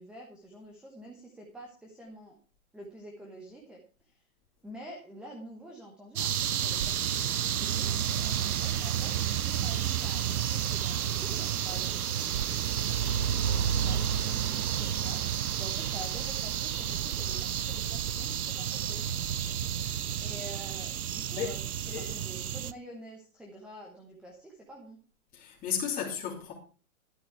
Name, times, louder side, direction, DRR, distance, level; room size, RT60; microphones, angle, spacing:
voice 1, 0.0-2.4 2.7-4.2 4.6-12.7 13.4-15.2 15.6-19.0 20.2-25.0, right 1 dB, ahead, 1.0 m, -48 dB
sound 1, 6.2-22.7, right 9 dB, 90° right, 0.8 m, -30 dB
voice 2, 19.8-20.2 21.4-21.5 21.9-22.1 25.3-26.5, left 8 dB, 20° left, 2.9 m, -35 dB
12.0 x 8.5 x 4.6 m
hypercardioid pair, 155°, 43 cm